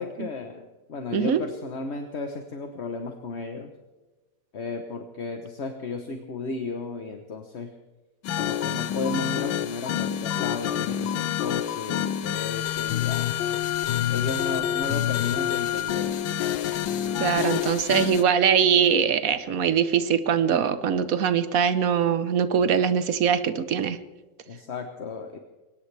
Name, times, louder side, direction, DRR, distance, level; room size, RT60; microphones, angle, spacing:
voice 1, 0.0-3.7 4.5-7.7 8.4-13.4 14.1-16.2 24.5-25.4, left 3 dB, 40° left, 5 dB, 1.1 m, -34 dB
sound 1, 8.2-18.2, left 10 dB, 85° left, 1.5 m, -27 dB
voice 2, 17.2-24.0, right 7 dB, 55° right, 12 dB, 1.2 m, -22 dB
22.0 x 19.5 x 3.4 m, 1.2 s
omnidirectional pair, 2.1 m